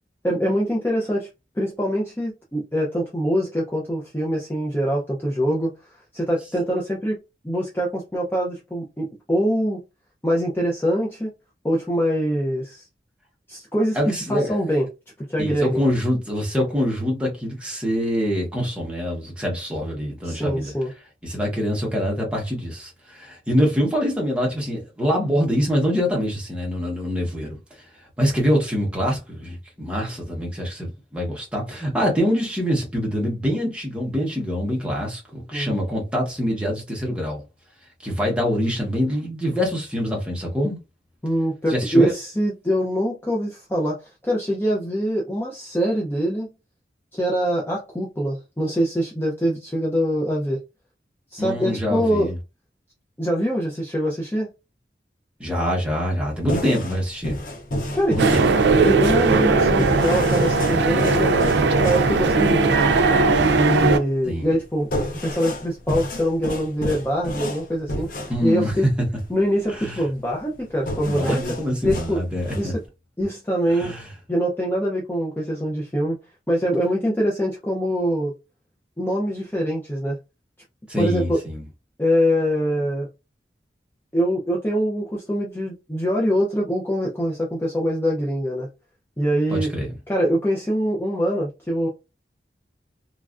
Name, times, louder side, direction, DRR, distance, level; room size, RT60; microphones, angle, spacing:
voice 1, 0.2-1.3 1.6-5.7 6.1-7.2 7.4-9.8 10.2-11.3 11.6-12.8 13.5-14.0 14.3-14.9 15.3-15.9 20.2-20.9 35.5-35.7 41.2-46.5 47.1-50.6 51.3-52.3 53.2-54.5 57.9-58.2 58.8-61.5 61.8-62.9 63.6-68.9 69.3-71.4 71.8-72.2 72.5-72.8 73.2-73.9 74.3-76.2 76.5-78.3 79.0-80.2 81.0-81.4 82.0-83.1 84.1-88.7 89.2-89.7 90.1-91.9, equal, 15° left, 0.5 m, -24 dB
voice 2, 13.9-14.6 15.4-20.7 21.2-27.6 28.2-37.4 38.0-40.8 41.7-42.1 51.4-52.4 55.4-57.4 58.1-58.4 64.3-64.4 68.3-68.9 69.7-70.0 71.0-72.7 73.7-74.1 80.9-81.6 89.5-89.9, equal, 5° right, 1.0 m, -24 dB
sound 1, 56.3-72.9, left 1 dB, 50° left, 0.7 m, -32 dB
sound 2, 58.2-64.0, right 3 dB, 85° right, 0.4 m, -18 dB
3.1 x 2.4 x 2.4 m
head